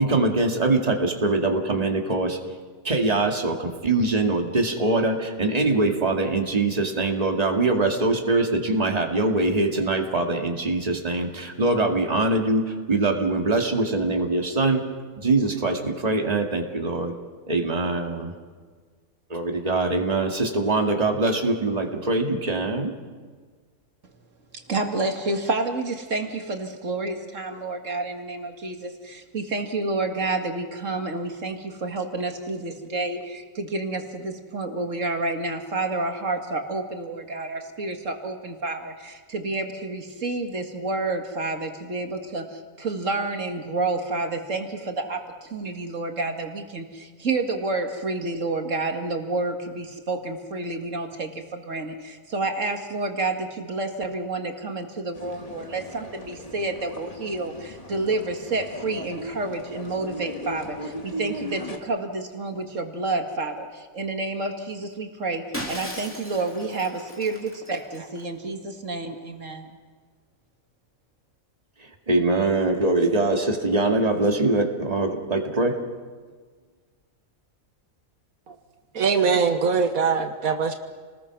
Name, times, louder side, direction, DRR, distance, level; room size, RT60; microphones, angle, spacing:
voice 1, 0.0-2.4 2.8-14.8 15.2-17.2 17.5-18.3 19.3-23.0 71.8-75.8, right 2 dB, 30° right, 2 dB, 2.3 m, -23 dB
voice 2, 24.5-69.7, right 2 dB, 65° right, 4 dB, 2.4 m, -29 dB
sound 1, 55.1-61.8, equal, 25° left, 1.7 m, -38 dB
Shatter, 65.5-68.2, equal, 10° left, 3.1 m, -37 dB
voice 3, 78.9-80.7, right 5 dB, 85° right, 6 dB, 1.7 m, -22 dB
29.5 x 20.0 x 6.1 m, 1.5 s
omnidirectional pair, 1.4 m